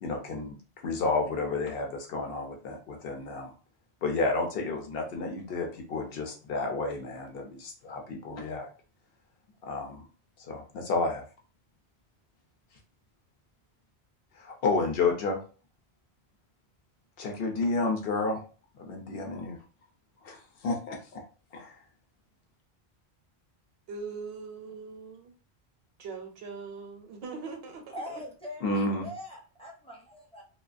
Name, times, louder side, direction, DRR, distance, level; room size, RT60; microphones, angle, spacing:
voice 1, 0.0-0.5 0.8-3.5 4.0-8.7 9.6-10.1 10.4-11.2 14.4-15.4 17.2-18.4 18.8-19.6 20.2-21.2 21.5-21.8 28.6-29.0, left 3 dB, 65° left, 3 dB, 0.7 m, -31 dB
voice 2, 23.9-25.3 26.0-28.2, right 4 dB, 70° right, 4 dB, 0.7 m, -41 dB
voice 3, 27.9-30.4, left 1 dB, 10° left, -3 dB, 0.4 m, -42 dB
2.3 x 2.2 x 2.4 m, 0.37 s
omnidirectional pair, 1.1 m